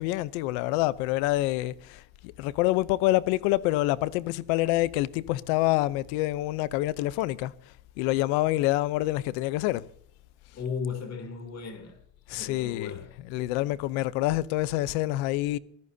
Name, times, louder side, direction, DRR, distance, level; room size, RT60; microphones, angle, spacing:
voice 1, 0.0-7.5 8.0-9.8 12.3-15.6, left 17 dB, 85° left, 0.8 m, -27 dB
voice 2, 10.5-12.0 12.3-13.2, left 6 dB, 40° left, 3.1 m, -36 dB
24.0 x 15.0 x 2.8 m
cardioid pair, 120°, 40 cm